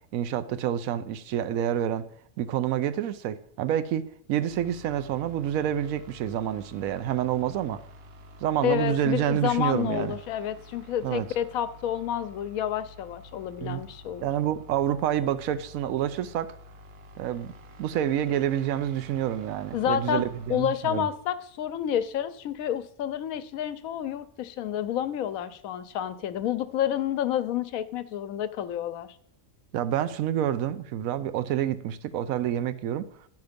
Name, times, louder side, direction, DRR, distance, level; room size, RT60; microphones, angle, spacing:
voice 1, 0.1-2.1 2.4-7.8 8.4-10.2 11.0-11.3 13.6-13.8 14.2-16.5 17.2-17.5 17.8-21.1 29.7-33.1, right 10 dB, 85° right, 1.0 m, -28 dB
sound 1, 4.5-20.7, left 1 dB, 55° right, 0.9 m, -49 dB
voice 2, 8.6-14.3 19.7-29.1, left 10 dB, 90° left, 1.1 m, -29 dB
10.5 x 6.0 x 5.1 m
omnidirectional pair, 1.4 m